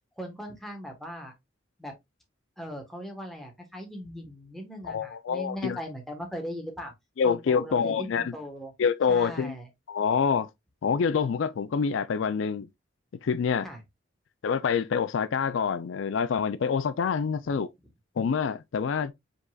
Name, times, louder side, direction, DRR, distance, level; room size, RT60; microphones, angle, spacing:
voice 1, 0.2-1.3 1.8-1.9 2.6-6.9 7.2-8.7 9.1-9.7 13.6-13.8 17.4-17.6, equal, ahead, 1.2 m, -39 dB
voice 2, 4.8-5.8 7.2-8.3 8.8-9.6 9.9-10.5 10.8-12.7 13.2-13.7 14.4-17.7 18.2-19.1, left 6 dB, 75° left, 0.4 m, -26 dB
5.2 x 3.9 x 2.3 m
head